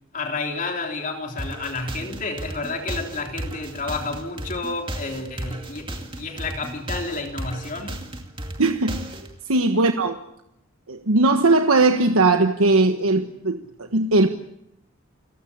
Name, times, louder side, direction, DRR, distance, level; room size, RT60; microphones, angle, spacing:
voice 1, 0.1-8.0 9.7-9.9, left 3 dB, 40° left, 2 dB, 3.4 m, -30 dB
sound 1, 1.4-9.3, right 1 dB, 25° right, 2.4 m, -34 dB
voice 2, 8.6-9.1 9.5-10.2 10.9-14.3, right 2 dB, 90° right, 6 dB, 1.3 m, -19 dB
30.0 x 15.5 x 8.6 m, 0.82 s
head